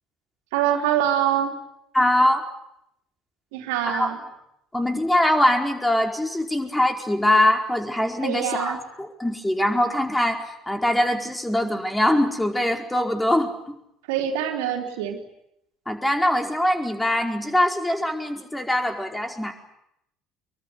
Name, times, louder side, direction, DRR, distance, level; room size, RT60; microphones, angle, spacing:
voice 1, 0.5-1.5 3.5-4.2 8.2-8.8 14.1-15.2, right 10 dB, 70° right, 4 dB, 3.5 m, -24 dB
voice 2, 1.9-2.4 3.8-4.1 4.7-13.8 15.9-19.5, left 1 dB, 10° left, 4 dB, 4.7 m, -22 dB
26.0 x 23.0 x 9.6 m, 0.80 s
figure-of-eight pair, 60°, 0 cm